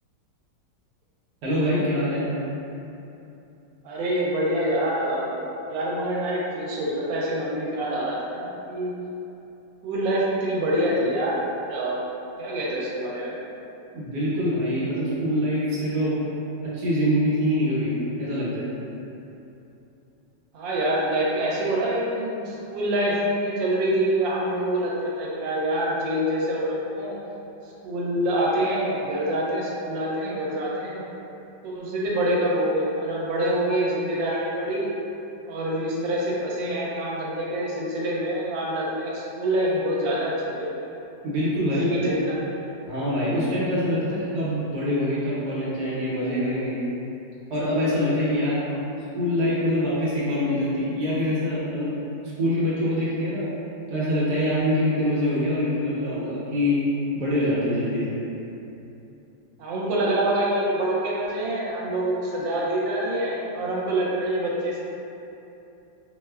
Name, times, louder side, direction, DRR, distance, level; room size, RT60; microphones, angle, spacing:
voice 1, 1.4-2.3 13.9-16.1 16.6-17.9 18.2-18.6 41.2-42.1 42.9-46.7 47.5-48.6 49.1-53.5 53.9-56.8 57.1-58.2, equal, 70° right, -9 dB, 1.2 m, -24 dB
voice 2, 3.8-5.3 5.7-8.9 9.8-11.4 11.7-12.0 12.4-13.4 20.5-27.2 27.8-31.0 31.6-34.9 35.5-40.7 41.8-42.7 59.6-64.8, right 1 dB, 90° right, -5 dB, 1.3 m, -26 dB
4.7 x 2.1 x 2.2 m, 2.9 s
omnidirectional pair, 2.0 m